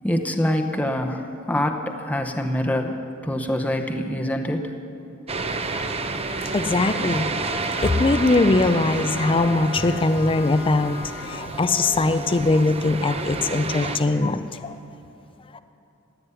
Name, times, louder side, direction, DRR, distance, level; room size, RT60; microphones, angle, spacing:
voice 1, 0.0-4.7 5.7-5.9 6.3-6.6 9.9-10.0 11.2-11.4, left 1 dB, 5° left, 3 dB, 0.8 m, -26 dB
sound 1, 5.3-14.0, right 3 dB, 30° right, 0.8 m, -30 dB
voice 2, 6.5-11.0 11.2-14.7 15.5-15.6, left 2 dB, 25° left, 10 dB, 0.4 m, -21 dB
sound 2, 7.7-11.6, left 5 dB, 45° left, 1.3 m, -38 dB
15.5 x 9.5 x 9.6 m, 2.7 s
head